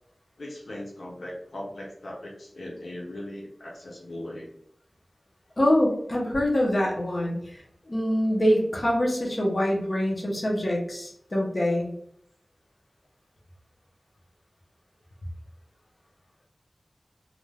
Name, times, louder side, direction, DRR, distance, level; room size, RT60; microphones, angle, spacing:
voice 1, 0.4-4.5, left 1 dB, 85° left, -3 dB, 0.6 m, -39 dB
voice 2, 5.6-11.9, equal, 50° left, -2 dB, 0.7 m, -25 dB
2.5 x 2.2 x 3.2 m, 0.70 s
wide cardioid pair, 60°, 0 cm